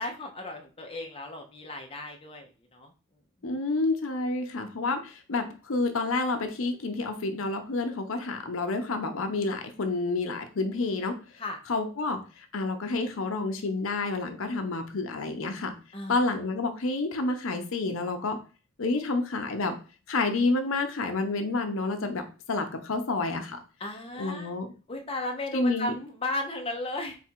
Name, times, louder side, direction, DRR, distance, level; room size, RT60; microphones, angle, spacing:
voice 1, 0.0-2.9 11.4-11.6 15.9-16.2 23.8-24.5 24.9-27.2, left 2 dB, 25° left, 2 dB, 0.6 m, -35 dB
voice 2, 3.4-11.2 11.7-15.7 16.1-18.4 18.8-19.8 20.1-23.6 24.2-24.7 25.5-25.9, left 3 dB, 70° left, 6 dB, 0.7 m, -29 dB
3.9 x 2.5 x 4.4 m, 0.35 s
head